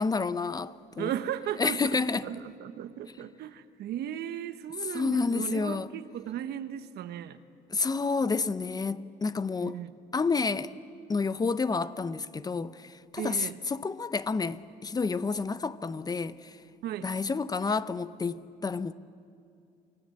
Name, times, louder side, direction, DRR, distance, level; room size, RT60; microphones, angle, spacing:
voice 1, 0.0-1.1 1.6-2.3 4.9-5.9 7.7-9.8 10.1-10.7 11.1-16.6 17.0-18.9, left 4 dB, 25° left, 0.6 m, -29 dB
voice 2, 1.0-7.4 9.6-9.9 13.2-13.6 16.8-17.1, right 10 dB, 70° right, 1.1 m, -36 dB
28.5 x 19.0 x 7.8 m
cardioid pair, 110°, 17 cm